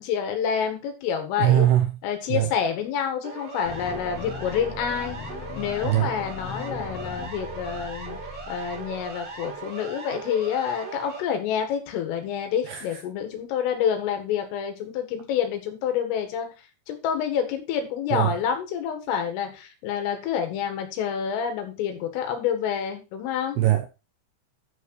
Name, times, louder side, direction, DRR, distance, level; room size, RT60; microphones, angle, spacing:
voice 1, 0.0-1.7 2.0-5.2 5.6-23.6, left 8 dB, 85° left, 4.3 m, -28 dB
voice 2, 1.4-1.9 2.3-2.5 5.8-6.1 12.7-12.8 18.1-18.4 23.6-23.9, right 13 dB, 75° right, 2.4 m, -21 dB
Siren, 3.2-11.2, right 4 dB, 50° right, 1.3 m, -38 dB
sound 1, 3.7-9.6, left 4 dB, 65° left, 2.9 m, -39 dB
9.8 x 6.3 x 4.7 m
omnidirectional pair, 5.7 m